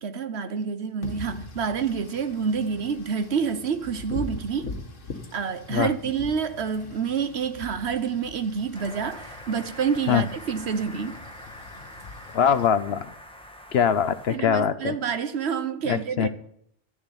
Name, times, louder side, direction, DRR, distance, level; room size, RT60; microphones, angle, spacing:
voice 1, 0.0-4.7 5.3-11.2 14.3-16.3, right 6 dB, 60° right, 1.1 m, -28 dB
Wind / Rain, 1.0-12.7, left 3 dB, 80° left, 2.1 m, -41 dB
sound 1, 8.7-14.4, equal, 5° left, 1.2 m, -44 dB
voice 2, 12.3-13.1 13.7-14.9 15.9-16.3, left 8 dB, 60° left, 0.9 m, -22 dB
12.5 x 7.2 x 9.8 m
omnidirectional pair, 1.3 m